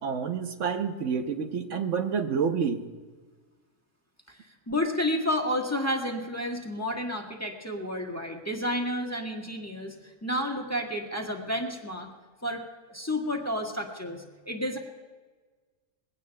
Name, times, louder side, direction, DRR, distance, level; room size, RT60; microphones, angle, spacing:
voice 1, 0.0-2.8, right 6 dB, 70° right, 6 dB, 1.2 m, -28 dB
voice 2, 4.3-12.1 12.4-12.6 12.9-14.8, left 1 dB, 10° left, 0 dB, 1.5 m, -31 dB
21.5 x 16.5 x 2.3 m, 1.4 s
omnidirectional pair, 1.3 m